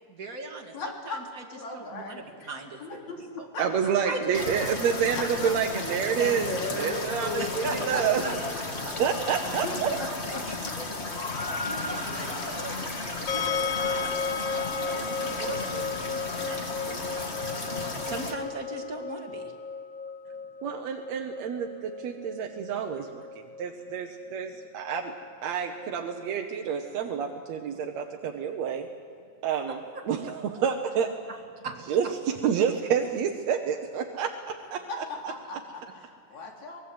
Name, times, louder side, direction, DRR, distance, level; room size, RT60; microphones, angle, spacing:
voice 1, 0.1-1.4 1.7-3.5 4.1-4.7 7.4-8.3 8.8-8.9 9.5-10.9 11.6-12.7 13.2-14.2 14.6-17.1 18.0-19.5 29.9-30.3 31.3-31.4 31.6-31.8, right 2 dB, 30° right, 1 dB, 2.4 m, -38 dB
voice 2, 0.7-1.2 1.5-3.6 5.1-5.5 6.0-8.6 8.9-9.0 9.6-10.7 12.2-12.3 34.9-36.8, left 3 dB, 55° left, 0 dB, 4.5 m, -37 dB
voice 3, 3.6-8.2 9.0-9.9 20.6-23.2 23.6-25.1 25.4-28.9 29.4-29.8 30.1-31.1 31.9-35.0, right 7 dB, 65° right, 2 dB, 2.0 m, -28 dB
sound 1, 4.3-18.3, left 3 dB, 30° left, 1.2 m, -34 dB
sound 2, 13.3-26.2, left 5 dB, 85° left, 1.0 m, -35 dB
24.0 x 20.5 x 8.0 m, 2.5 s
omnidirectional pair, 3.9 m